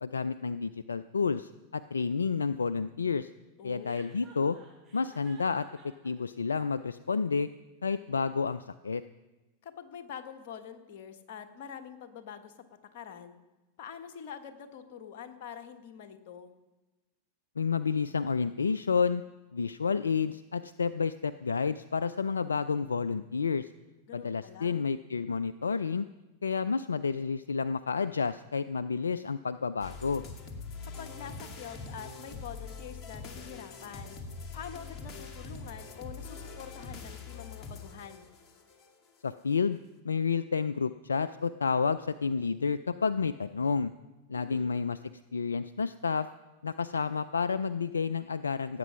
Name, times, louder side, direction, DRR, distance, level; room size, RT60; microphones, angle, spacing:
voice 1, 0.0-3.3 3.6-4.6 4.9-7.5 7.8-9.0 17.6-19.2 19.5-23.7 24.1-26.0 26.4-30.2 39.2-39.8 40.0-43.9 44.3-45.0 45.3-46.3 46.6-48.8, left 5 dB, 85° left, 14 dB, 0.3 m, -30 dB
voice 2, 3.6-3.9 9.6-12.5 12.9-13.4 13.8-16.5 24.1-24.8 30.8-34.2 34.5-38.3 44.3-44.8, left 8 dB, 60° left, 6 dB, 1.4 m, -45 dB
Chuckle chortle, 3.8-6.1, right 4 dB, 25° right, 5.6 m, -55 dB
sound 1, 29.8-38.9, left 4 dB, 35° left, 2.1 m, -43 dB
17.0 x 8.4 x 5.7 m, 1.1 s
hypercardioid pair, 95°, 0 cm